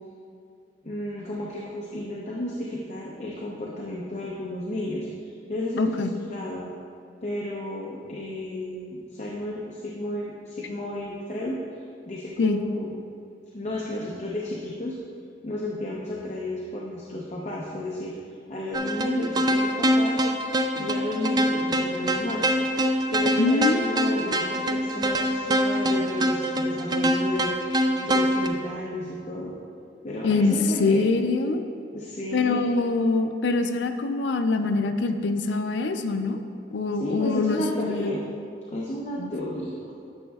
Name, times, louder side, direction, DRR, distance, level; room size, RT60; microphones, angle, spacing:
voice 1, 0.8-6.6 7.2-11.6 12.1-12.9 13.5-15.0 15.4-18.1 18.5-20.2 20.8-22.5 23.1-27.6 28.0-29.5 30.0-31.1 31.9-32.8 36.9-38.2 38.7-39.8, left 1 dB, 40° left, -4 dB, 0.7 m, -32 dB
voice 2, 5.8-6.1 12.4-12.6 23.4-24.3 30.2-31.6 32.3-36.4 36.7-38.2 39.2-39.3, left 3 dB, 85° left, 8 dB, 0.4 m, -24 dB
sound 1, 18.7-28.5, equal, 25° right, 0.3 m, -24 dB
10.5 x 6.2 x 2.3 m, 2.4 s
head